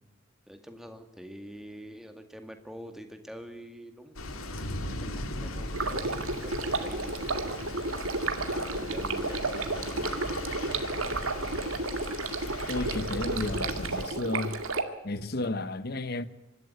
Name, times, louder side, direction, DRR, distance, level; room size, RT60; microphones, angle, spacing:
voice 1, 0.5-4.5 5.0-6.2 6.4-7.6 7.8-10.5, equal, ahead, 2.0 m, -46 dB
sound 1, 4.1-14.1, left 1 dB, 85° left, 2.2 m, -38 dB
Stream, 5.7-14.8, right 3 dB, 85° right, 2.1 m, -32 dB
voice 2, 12.7-14.6 15.0-16.2, left 2 dB, 50° left, 0.9 m, -32 dB
24.5 x 13.0 x 9.4 m
head